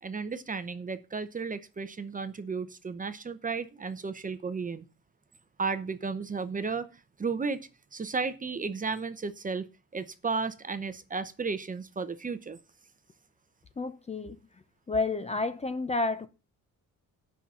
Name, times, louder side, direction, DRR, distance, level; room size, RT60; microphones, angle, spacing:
voice 1, 0.0-4.8 5.6-6.9 7.2-9.7 9.9-12.6, right 4 dB, 25° right, 0.7 m, -34 dB
voice 2, 13.8-14.4 14.9-16.3, left 3 dB, 20° left, 0.6 m, -30 dB
9.7 x 5.7 x 7.5 m
cardioid pair, 150°, 33 cm